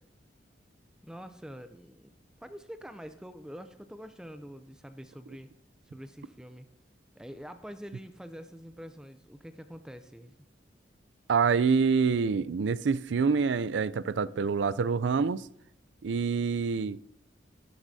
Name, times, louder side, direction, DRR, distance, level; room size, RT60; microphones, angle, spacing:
voice 1, 1.0-2.1 2.4-5.5 5.9-6.7 7.2-10.3, equal, 5° right, 0.4 m, -45 dB
voice 2, 11.3-15.5 16.0-17.0, right 5 dB, 75° right, 0.4 m, -26 dB
13.5 x 12.5 x 2.7 m
head